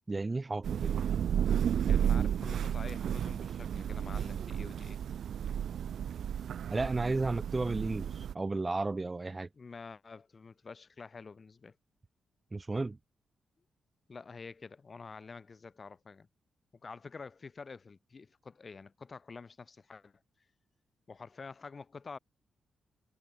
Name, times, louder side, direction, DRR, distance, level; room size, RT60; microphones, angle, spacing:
voice 1, 0.1-1.0 6.7-9.5 12.5-13.0, right 3 dB, 20° right, 1.1 m, -33 dB
Thunder / Rain, 0.6-8.3, right 9 dB, 70° right, 1.1 m, -32 dB
voice 2, 1.9-5.0 9.5-11.8 14.1-16.3 16.8-20.1 21.1-22.2, left 4 dB, 35° left, 3.9 m, -48 dB
cardioid pair, 110°, 0 cm